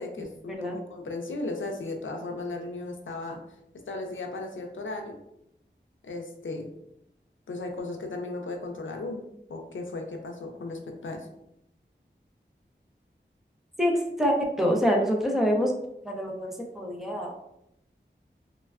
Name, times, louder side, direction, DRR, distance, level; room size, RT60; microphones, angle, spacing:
voice 1, 0.0-3.4 3.9-5.2 6.0-6.7 7.5-9.2 9.5-11.3, left 2 dB, 85° left, 2 dB, 0.4 m, -36 dB
voice 2, 13.8-15.7 16.0-17.4, equal, ahead, -1 dB, 0.5 m, -26 dB
3.2 x 2.2 x 2.3 m, 0.80 s
wide cardioid pair, 55°, 19 cm